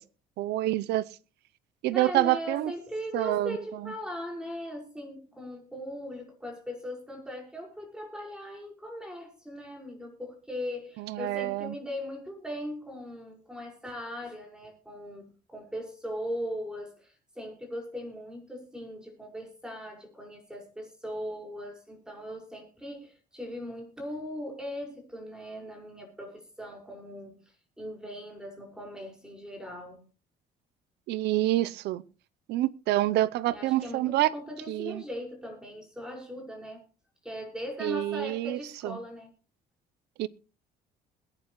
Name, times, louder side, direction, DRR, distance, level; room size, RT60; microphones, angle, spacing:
voice 1, 0.4-1.0 1.8-2.7 3.1-3.6 3.8-3.9 11.0-11.7 31.1-32.0 32.5-34.3 34.7-35.0 37.8-39.0 40.2-40.3, right 15 dB, 80° right, 19 dB, 0.7 m, -27 dB
voice 2, 1.9-15.2 15.5-30.0 33.5-36.8 37.2-39.3, equal, 5° right, 1 dB, 5.5 m, -39 dB
21.5 x 9.6 x 3.1 m, 0.34 s
cardioid pair, 110°, 17 cm